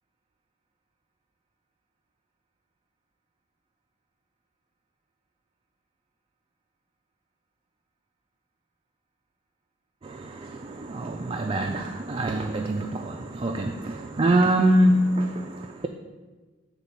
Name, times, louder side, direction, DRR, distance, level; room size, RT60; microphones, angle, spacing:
voice 1, 10.0-15.9, right 1 dB, 25° right, 4 dB, 0.3 m, -24 dB
8.3 x 3.6 x 5.9 m, 1.3 s
head